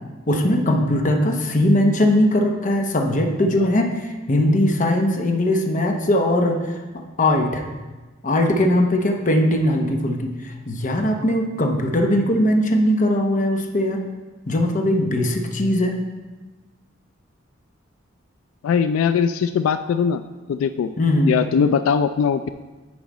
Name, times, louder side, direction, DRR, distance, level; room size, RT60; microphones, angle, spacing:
voice 1, 0.3-6.8 7.2-7.6 8.2-14.0 14.5-16.0 21.0-21.4, left 1 dB, 40° left, 3 dB, 0.8 m, -20 dB
voice 2, 18.6-20.2 20.5-20.9 21.3-22.5, left 6 dB, 90° left, 12 dB, 0.3 m, -20 dB
9.5 x 4.8 x 4.1 m, 1.2 s
head